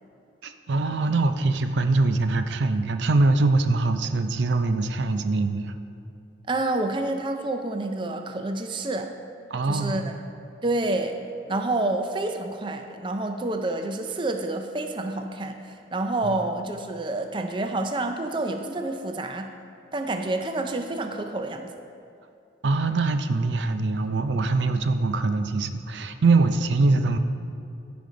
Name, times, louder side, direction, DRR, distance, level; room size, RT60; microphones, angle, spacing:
voice 1, 0.4-5.7 9.5-10.0 16.2-16.4 22.6-27.2, right 3 dB, 80° right, 9 dB, 0.5 m, -23 dB
voice 2, 6.5-9.1 9.7-10.1 10.6-11.2 11.5-19.5 19.9-21.7, right 2 dB, 25° right, 5 dB, 0.5 m, -28 dB
15.0 x 5.2 x 3.8 m, 2.6 s
head